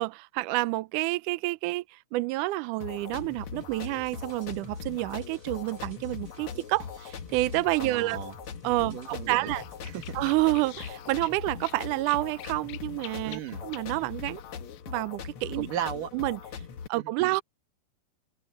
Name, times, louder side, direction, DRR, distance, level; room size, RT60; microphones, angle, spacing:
voice 1, 0.0-8.2 8.6-9.6 10.2-14.4 14.9-15.7 16.1-16.4 16.9-17.4, right 20 dB, 80° right, 1.8 m, -29 dB
sound 1, 2.8-16.9, left 7 dB, 65° left, 1.4 m, -41 dB
sound 2, 3.6-11.0, right 1 dB, 10° right, 1.1 m, -53 dB
voice 2, 7.8-8.3 8.8-9.5 9.8-10.0 13.2-13.6 15.6-16.1 17.0-17.4, right 10 dB, 65° right, 3.2 m, -36 dB
sound 3, 9.5-14.8, left 18 dB, 85° left, 2.5 m, -48 dB
omnidirectional pair, 4.2 m